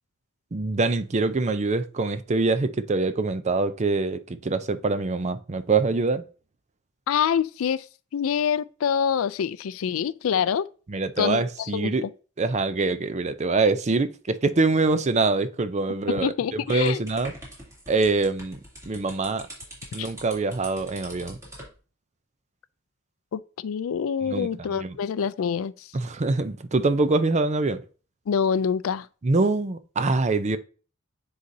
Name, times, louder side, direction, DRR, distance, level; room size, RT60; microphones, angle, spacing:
voice 1, 0.5-6.2 10.9-12.0 12.4-17.3 17.9-18.6 18.9-19.5 19.9-21.4 24.2-25.0 25.9-27.8 29.2-30.6, right 3 dB, 35° right, 0.5 m, -24 dB
voice 2, 7.1-7.9 8.1-10.7 11.2-11.9 16.1-17.0 20.0-20.1 23.3-25.9 28.3-29.1, left 7 dB, 70° left, 0.4 m, -26 dB
sound 1, 16.7-21.7, right 1 dB, 15° right, 2.7 m, -43 dB
9.5 x 4.0 x 2.7 m
head